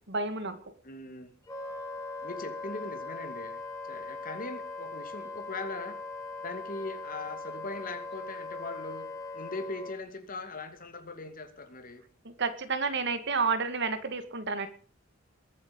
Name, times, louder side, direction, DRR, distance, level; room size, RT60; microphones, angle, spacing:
voice 1, 0.1-0.6 12.2-14.7, right 4 dB, 60° right, 11 dB, 2.0 m, -30 dB
voice 2, 0.8-1.3 2.2-6.0 6.4-9.1 9.3-12.0, left 3 dB, 45° left, 7 dB, 2.6 m, -40 dB
Wind instrument woodwind instrument, 1.5-10.0, left 3 dB, 15° left, 3.9 m, -40 dB
21.5 x 8.9 x 5.4 m, 0.43 s
head